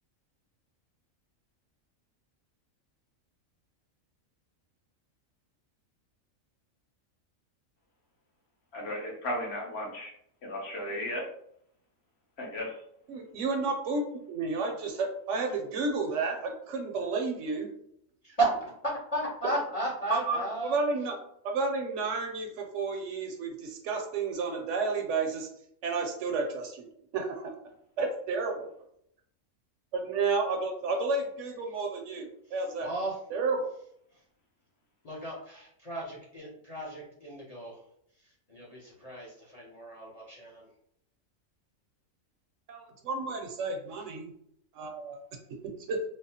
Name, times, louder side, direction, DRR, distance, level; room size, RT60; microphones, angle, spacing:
voice 1, 8.7-10.1 10.4-11.2 12.4-12.7, left 1 dB, 55° left, -2 dB, 1.0 m, -35 dB
voice 2, 13.1-14.0 14.3-17.7 20.1-21.2 21.4-25.5 25.8-26.9 27.1-27.5 28.0-28.7 29.9-32.9 33.3-33.7 42.7-44.3 44.7-45.2 45.9-46.0, right 4 dB, 70° right, 3 dB, 0.9 m, -31 dB
voice 3, 18.8-20.7 32.8-33.1 35.0-37.8 38.5-40.6, right 2 dB, 40° left, -6 dB, 0.6 m, -34 dB
3.4 x 2.0 x 2.7 m, 0.71 s
omnidirectional pair, 1.4 m